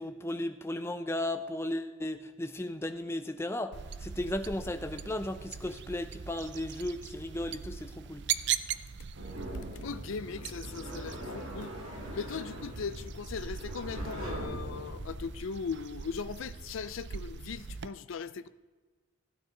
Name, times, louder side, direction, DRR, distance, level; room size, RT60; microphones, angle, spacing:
voice 1, 0.0-8.2, left 1 dB, 10° left, 8 dB, 0.6 m, -35 dB
sound 1, 3.7-17.9, right 8 dB, 55° right, 0.4 m, -40 dB
sound 2, 9.1-15.3, equal, 70° right, 2.7 m, -42 dB
voice 2, 9.8-11.7 12.1-18.5, left 5 dB, 75° left, 14 dB, 0.5 m, -39 dB
15.0 x 9.5 x 3.9 m, 1.3 s
head